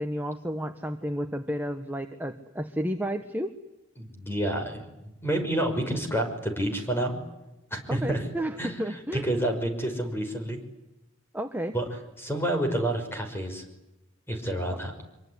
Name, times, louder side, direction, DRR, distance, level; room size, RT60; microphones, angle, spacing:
voice 1, 0.0-3.5 7.9-9.3 11.3-11.7 14.7-14.8, equal, 10° right, 6 dB, 1.3 m, -32 dB
voice 2, 4.0-4.9 5.2-7.2 7.7-8.2 8.6-10.6 11.7-11.8 12.2-13.6 14.3-14.9, right 1 dB, 10° left, 4 dB, 5.9 m, -29 dB
25.0 x 23.5 x 9.8 m, 0.92 s
head